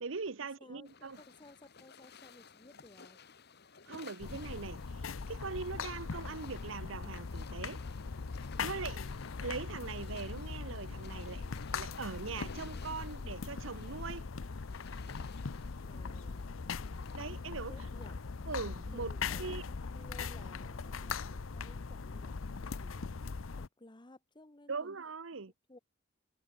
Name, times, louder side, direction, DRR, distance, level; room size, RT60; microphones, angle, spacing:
voice 1, 0.0-1.2 3.8-7.8 8.6-9.0 9.4-14.3 17.1-17.7 18.5-19.1 19.4-19.6 24.7-25.5, right 4 dB, 75° right, 0.9 m, -41 dB
voice 2, 0.6-3.2 15.8-16.6 17.7-18.2 18.9-25.0 25.7-25.8, left 2 dB, 25° left, 1.3 m, -57 dB
sound 1, 0.8-20.0, left 6 dB, 55° left, 1.7 m, -58 dB
sound 2, 4.2-23.7, left 5 dB, 85° left, 0.7 m, -40 dB
sound 3, 5.4-10.3, right 1 dB, 20° right, 4.3 m, -69 dB
head